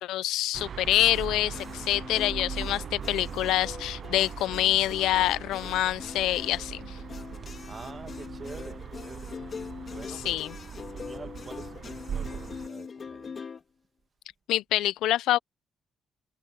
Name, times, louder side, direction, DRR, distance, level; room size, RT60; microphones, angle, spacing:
voice 1, 0.0-7.0 10.3-10.5 14.5-15.4, left 14 dB, 90° left, 0.5 m, -26 dB
sound 1, 0.5-12.7, right 8 dB, 55° right, 0.4 m, -40 dB
sound 2, 1.0-6.8, left 9 dB, 65° left, 4.4 m, -66 dB
sound 3, 1.1-13.6, left 5 dB, 45° left, 3.0 m, -42 dB
voice 2, 7.4-9.4 9.9-10.4 10.9-13.4, right 5 dB, 35° right, 1.9 m, -46 dB
cardioid pair, 90°, 0 cm